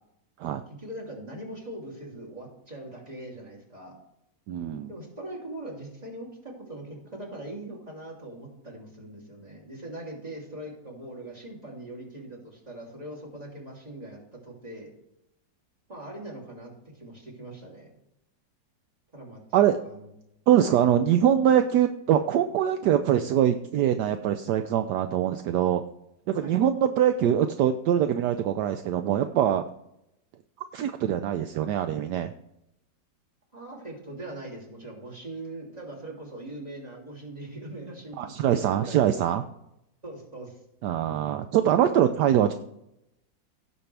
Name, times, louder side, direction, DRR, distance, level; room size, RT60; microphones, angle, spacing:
voice 1, 0.7-3.9 4.9-14.9 15.9-18.0 19.1-20.1 20.7-20.8 26.4-26.5 33.5-39.1 40.0-40.5, right 1 dB, 20° right, -2 dB, 3.0 m, -41 dB
voice 2, 4.5-4.9 19.5-19.8 20.5-25.8 26.3-29.6 30.7-32.3 38.2-39.4 40.8-42.5, right 10 dB, 75° right, 9 dB, 1.1 m, -23 dB
16.5 x 6.9 x 3.4 m, 0.82 s
omnidirectional pair, 2.0 m